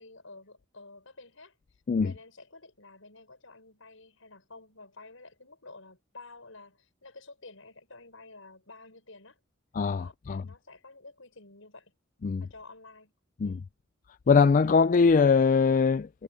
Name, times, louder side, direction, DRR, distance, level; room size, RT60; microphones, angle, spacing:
voice 1, 0.0-1.6 2.0-9.4 10.0-11.9 12.4-13.1 13.4-13.7, left 3 dB, 75° left, 6.9 m, -51 dB
voice 2, 9.7-10.4 12.2-12.4 13.4-13.6 14.3-16.2, left 5 dB, 40° left, 0.4 m, -22 dB
head